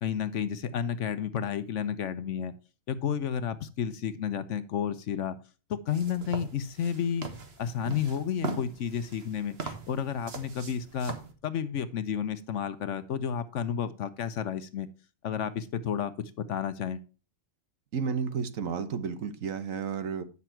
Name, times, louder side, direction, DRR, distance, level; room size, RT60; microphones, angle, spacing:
voice 1, 0.0-2.5 2.9-5.4 5.7-7.3 7.6-11.2 11.4-14.9 15.2-17.0, left 8 dB, 65° left, 13 dB, 1.0 m, -31 dB
sound 1, 5.9-11.3, right 4 dB, 45° right, 1.4 m, -40 dB
voice 2, 17.9-20.2, right 6 dB, 70° right, 9 dB, 1.4 m, -32 dB
9.7 x 6.0 x 4.4 m, 0.34 s
omnidirectional pair, 1.5 m